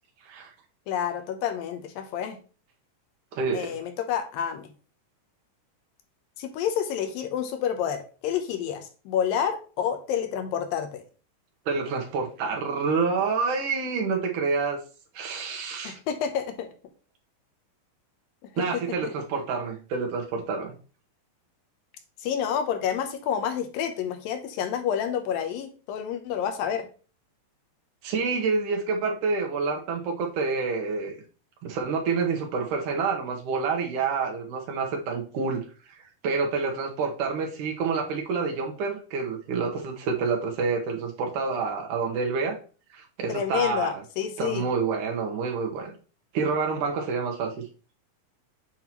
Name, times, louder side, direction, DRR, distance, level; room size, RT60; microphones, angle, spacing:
voice 1, 0.9-2.4 3.5-4.7 6.4-11.0 15.8-16.7 18.4-18.7 22.2-26.9 43.3-44.7, left 8 dB, 85° left, 2.6 m, -29 dB
voice 2, 3.3-3.8 11.7-14.8 15.1-16.0 18.6-20.8 28.0-31.2 31.6-35.7 36.2-42.6 42.9-44.0 44.4-45.9 46.3-47.5, right 4 dB, 70° right, 2.6 m, -28 dB
7.9 x 5.5 x 3.0 m
omnidirectional pair, 4.0 m